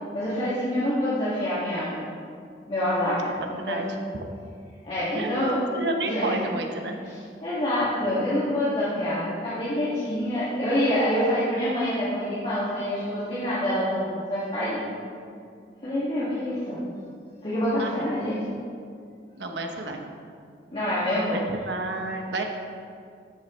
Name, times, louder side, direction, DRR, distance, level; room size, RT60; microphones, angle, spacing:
voice 1, 0.1-2.0 2.7-3.2 3.5-3.8 4.8-5.6 6.0-6.4 7.0-14.8 15.8-16.8 17.4-18.4 20.7-21.4, left 1 dB, 35° left, -11 dB, 2.0 m, -26 dB
voice 2, 5.2-7.0 17.8-18.1 19.4-20.0 21.3-22.4, right 2 dB, 65° right, 3 dB, 1.0 m, -30 dB
13.0 x 7.4 x 3.2 m, 2.2 s
head